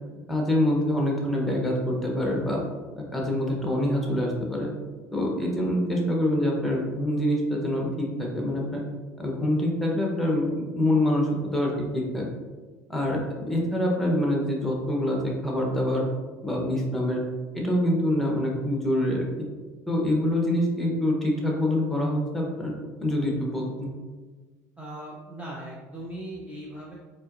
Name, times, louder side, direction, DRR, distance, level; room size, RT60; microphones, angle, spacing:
voice 1, 0.3-2.6 3.0-4.7 5.1-8.8 9.2-10.5 10.7-12.3 12.9-16.1 16.4-17.2 17.5-19.3 19.9-22.7 23.0-23.9, left 1 dB, ahead, -2 dB, 1.0 m, -25 dB
voice 2, 24.8-27.0, right 1 dB, 15° right, -5 dB, 0.7 m, -39 dB
4.1 x 3.0 x 2.6 m, 1.3 s
supercardioid pair, 85°, 9 cm